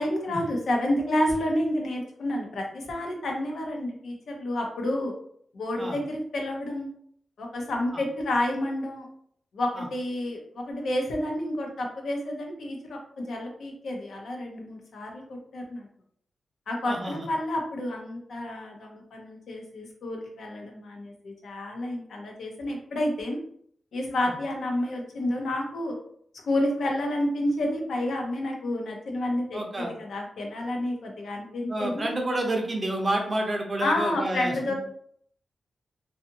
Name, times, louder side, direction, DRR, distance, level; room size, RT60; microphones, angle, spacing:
voice 1, 0.0-5.1 5.5-6.9 7.4-9.1 9.5-15.9 16.7-23.4 23.9-25.9 26.4-32.1 33.8-34.7, left 1 dB, 80° left, 0 dB, 0.7 m, -30 dB
voice 2, 16.9-17.2 24.2-24.3 29.5-29.9 31.7-34.7, right 1 dB, 30° right, 2 dB, 0.5 m, -29 dB
2.6 x 2.4 x 2.6 m, 0.64 s
wide cardioid pair, 130°, 0 cm